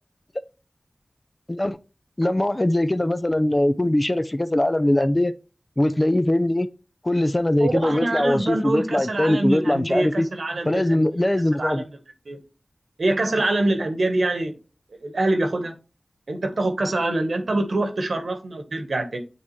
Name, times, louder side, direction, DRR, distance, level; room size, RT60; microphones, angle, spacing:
voice 1, 2.2-5.3 5.8-6.7 7.0-10.3 10.7-11.8, left 1 dB, 25° left, 0.4 m, -21 dB
voice 2, 7.6-11.0 11.6-11.8 12.2-12.4 13.0-14.5 15.0-15.7 16.3-19.2, right 2 dB, 85° right, 1.3 m, -24 dB
8.7 x 3.5 x 3.2 m
wide cardioid pair, 75°, 0 cm